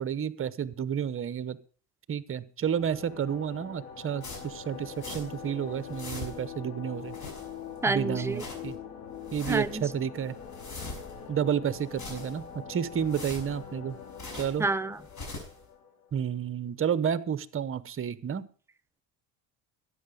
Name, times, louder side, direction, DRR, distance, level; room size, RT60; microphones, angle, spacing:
voice 1, 0.0-1.6 2.1-7.1 7.9-8.8 9.3-10.4 11.3-14.0 14.3-14.7 16.1-18.4, right 8 dB, 30° right, 0.9 m, -31 dB
sound 1, 2.7-16.3, left 7 dB, 80° left, 2.6 m, -43 dB
sound 2, 4.2-5.5 5.7-6.6 7.0-7.8 8.1-8.8 9.2-9.8 10.2-11.3 11.7-12.6 12.9-14.7 15.0-15.6, left 3 dB, 40° left, 6.1 m, -43 dB
voice 2, 7.8-8.5 9.5-9.8 14.6-15.0, right 3 dB, 5° right, 0.5 m, -28 dB
12.5 x 9.1 x 5.1 m
supercardioid pair, 100°, 44 cm